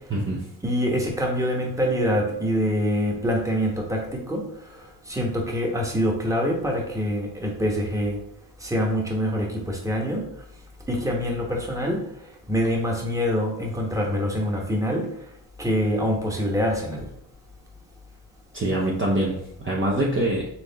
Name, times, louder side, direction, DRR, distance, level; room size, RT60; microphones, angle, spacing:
voice 1, 0.1-0.4 18.5-20.5, right 1 dB, 30° right, -2 dB, 0.7 m, -24 dB
voice 2, 0.6-4.4 4.7-8.2 8.6-10.3 10.9-12.0 12.5-15.1 15.6-17.0, equal, 5° right, -1 dB, 1.1 m, -25 dB
4.2 x 3.1 x 4.0 m, 0.75 s
cardioid pair, 95°, 44 cm